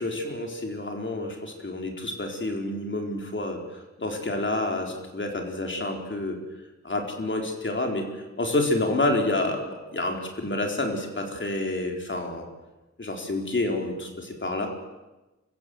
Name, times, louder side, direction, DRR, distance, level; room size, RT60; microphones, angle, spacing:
voice 1, 0.0-3.6 4.0-6.4 6.8-8.0 8.4-12.5 13.0-14.7, left 2 dB, 40° left, 2 dB, 4.2 m, -28 dB
27.0 x 15.5 x 7.8 m, 1.1 s
wide cardioid pair, 95°, 29 cm